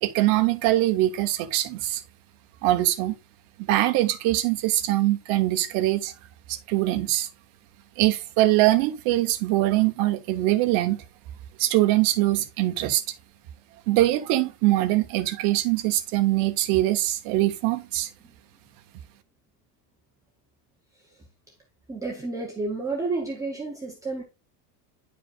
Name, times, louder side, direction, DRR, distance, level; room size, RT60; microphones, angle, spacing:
voice 1, 0.0-2.0 2.6-3.1 3.7-6.1 6.5-7.3 8.0-11.0 11.6-13.0 13.9-18.1, right 16 dB, 50° right, 1.1 m, -22 dB
voice 2, 21.9-24.2, right 3 dB, 5° right, 0.8 m, -30 dB
10.0 x 5.0 x 2.4 m
cardioid pair, 180°, 44 cm